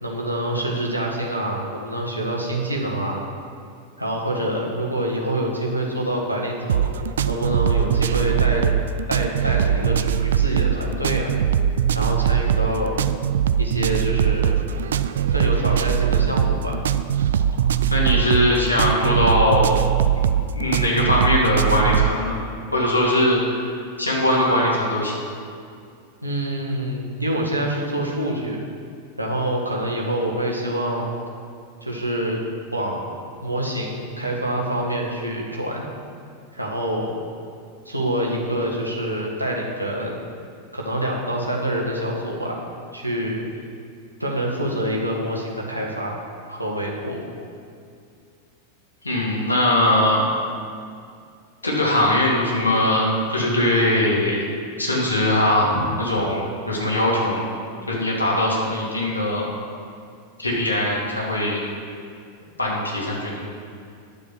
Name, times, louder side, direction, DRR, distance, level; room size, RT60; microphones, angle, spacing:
voice 1, 0.0-3.3 4.0-8.7 9.1-11.3 11.9-13.0 13.6-14.6 15.3-16.8 26.2-28.6 29.2-31.2 31.8-32.4 32.7-33.1 33.4-35.9 36.5-37.1 37.8-40.2 40.7-42.6 42.9-43.4 44.2-46.2 46.4-47.2, right 1 dB, 85° right, -2 dB, 1.6 m, -26 dB
sound 1, 6.7-22.2, right 9 dB, 65° right, 0.4 m, -21 dB
voice 2, 17.9-19.8 20.1-20.2 20.5-22.4 22.7-25.1 49.0-50.3 51.6-54.4 54.8-56.4 56.7-57.5 57.9-59.5 60.4-61.6 62.6-63.4, left 1 dB, 80° left, -3 dB, 2.3 m, -21 dB
10.5 x 7.3 x 5.9 m, 2.3 s
figure-of-eight pair, 90°, 0 cm